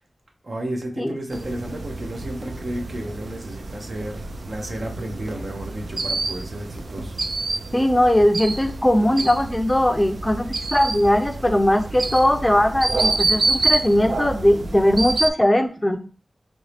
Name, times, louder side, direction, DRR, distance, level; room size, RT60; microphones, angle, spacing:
voice 1, 0.4-7.1, right 1 dB, 60° right, 3 dB, 0.7 m, -32 dB
sound 1, 1.3-15.3, right 2 dB, 75° right, 0.3 m, -28 dB
voice 2, 7.7-16.0, left 1 dB, 15° left, 6 dB, 0.4 m, -19 dB
3.1 x 2.6 x 3.3 m, 0.37 s
wide cardioid pair, 55°, 0 cm